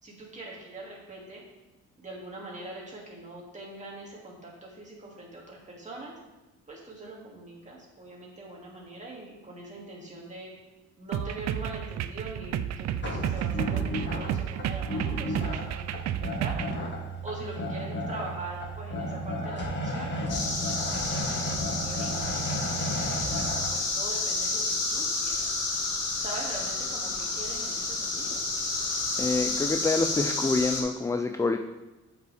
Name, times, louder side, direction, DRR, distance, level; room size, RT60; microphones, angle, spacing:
voice 1, 0.0-1.5 2.0-6.1 6.7-10.5 11.0-16.6 17.2-20.1 20.5-25.5 26.2-28.4, right 2 dB, 25° right, -3 dB, 2.3 m, -42 dB
sound 1, 11.1-16.8, right 10 dB, 60° right, 0.4 m, -31 dB
sound 2, 13.0-23.7, equal, 35° left, 1.6 m, -33 dB
sound 3, 20.3-30.8, left 3 dB, 55° left, 1.7 m, -30 dB
voice 2, 29.2-31.6, left 3 dB, 10° left, 7 dB, 0.3 m, -27 dB
7.6 x 5.6 x 3.4 m, 1.1 s
cardioid pair, 90°, 30 cm